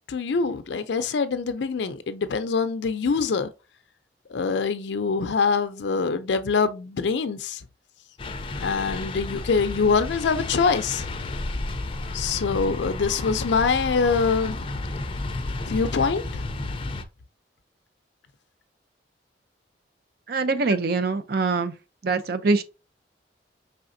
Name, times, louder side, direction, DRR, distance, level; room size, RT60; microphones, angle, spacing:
voice 1, 0.1-3.5 4.3-7.6 8.6-11.1 12.1-14.7 15.7-16.5, left 5 dB, 85° left, 0.4 m, -24 dB
sound 1, 8.2-17.0, left 2 dB, 30° left, 0.5 m, -32 dB
voice 2, 20.3-21.7 22.0-22.6, right 3 dB, 60° right, 0.5 m, -23 dB
4.9 x 3.4 x 2.6 m
head